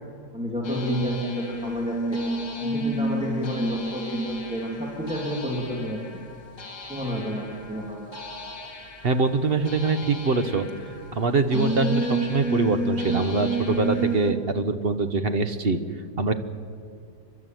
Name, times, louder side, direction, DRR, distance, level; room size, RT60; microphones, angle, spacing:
voice 1, 0.3-2.2 2.6-6.0 6.9-8.1, equal, 5° right, -2 dB, 2.9 m, -30 dB
sound 1, 0.6-14.3, right 1 dB, 50° left, 2.3 m, -30 dB
voice 2, 9.0-10.7 11.1-15.8 16.2-16.3, right 3 dB, 40° right, 9 dB, 1.3 m, -23 dB
30.0 x 12.0 x 9.3 m, 2.3 s
omnidirectional pair, 1.7 m